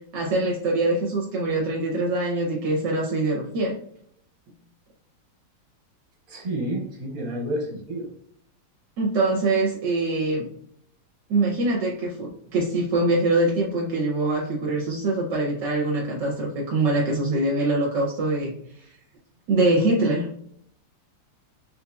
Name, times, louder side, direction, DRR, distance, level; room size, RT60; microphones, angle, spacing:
voice 1, 0.1-3.7 9.0-10.5 11.3-18.5 19.5-20.3, right 2 dB, 75° right, -1 dB, 1.3 m, -23 dB
voice 2, 6.3-8.1, right 1 dB, 50° right, 0 dB, 1.4 m, -30 dB
3.8 x 2.9 x 2.2 m, 0.65 s
omnidirectional pair, 2.0 m